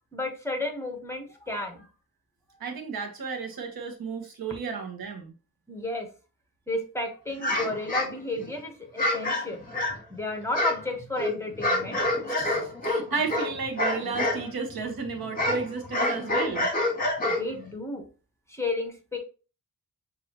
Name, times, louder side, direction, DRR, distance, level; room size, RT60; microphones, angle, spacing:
voice 1, 0.1-1.9 5.7-6.1 6.7-9.6 10.1-12.0 14.4-14.5 17.4-18.1 18.5-19.2, left 2 dB, 5° left, 1.1 m, -32 dB
voice 2, 2.6-5.3 12.3-16.7, right 5 dB, 75° right, 1.1 m, -33 dB
sound 1, 7.4-8.5 9.0-10.1 10.5-14.4 14.7-17.7, left 1 dB, 25° left, 1.6 m, -27 dB
6.4 x 2.8 x 2.8 m
wide cardioid pair, 130°, 36 cm